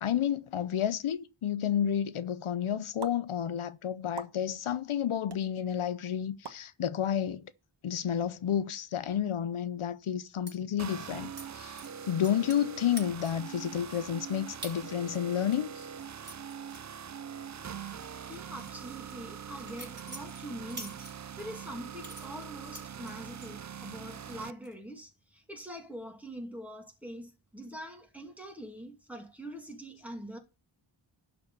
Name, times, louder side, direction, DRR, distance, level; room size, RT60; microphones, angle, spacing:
voice 1, 0.0-7.5 7.8-11.8 12.1-15.9, left 9 dB, 80° left, 0.7 m, -31 dB
sound 1, 3.0-3.1 4.2-4.3 5.3-5.4 6.4-6.6, right 5 dB, 50° right, 1.3 m, -40 dB
sound 2, 10.5-10.6 11.4-11.5 11.8-12.7 13.0-13.5 13.9-14.0 14.6-14.8 15.1-17.5 17.7-17.9 18.3-21.5 22.0-23.5 23.9-24.4 24.6-25.0, right 1 dB, 20° right, 4.8 m, -47 dB
sound 3, 10.8-24.5, right 7 dB, 35° right, 0.5 m, -43 dB
voice 2, 18.3-21.0 21.4-30.4, equal, 5° right, 2.4 m, -44 dB
11.5 x 4.5 x 6.7 m
wide cardioid pair, 75°, 49 cm